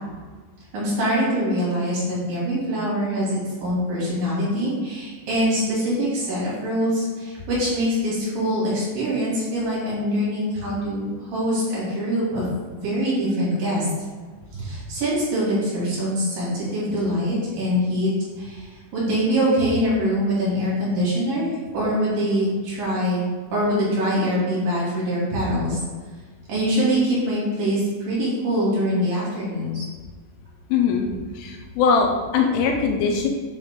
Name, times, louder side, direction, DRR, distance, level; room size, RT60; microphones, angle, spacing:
voice 1, 0.7-12.5 12.7-13.9 14.5-18.7 18.9-23.2 23.5-25.8 26.5-29.9, equal, 55° right, -8 dB, 2.8 m, -24 dB
voice 2, 30.7-31.1 31.3-33.3, left 5 dB, 85° left, 2 dB, 3.0 m, -21 dB
7.7 x 3.6 x 3.6 m, 1.5 s
omnidirectional pair, 5.9 m